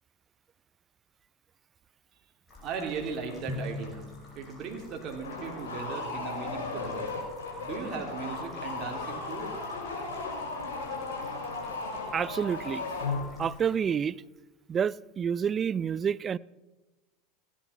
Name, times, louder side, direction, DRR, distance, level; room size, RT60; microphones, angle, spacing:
sound 1, 2.5-13.8, left 1 dB, 30° left, 5.8 m, -53 dB
voice 1, 2.6-4.0 4.3-7.1 7.6-9.5, right 5 dB, 50° right, 2.8 m, -37 dB
Drum, 3.5-5.7, left 2 dB, 5° left, 2.8 m, -41 dB
sound 2, 5.2-13.5, left 3 dB, 75° left, 4.5 m, -36 dB
voice 2, 12.1-12.8 13.4-14.2 14.7-16.4, right 7 dB, 30° right, 0.4 m, -28 dB
16.0 x 10.5 x 5.6 m
hypercardioid pair, 90°, 0 cm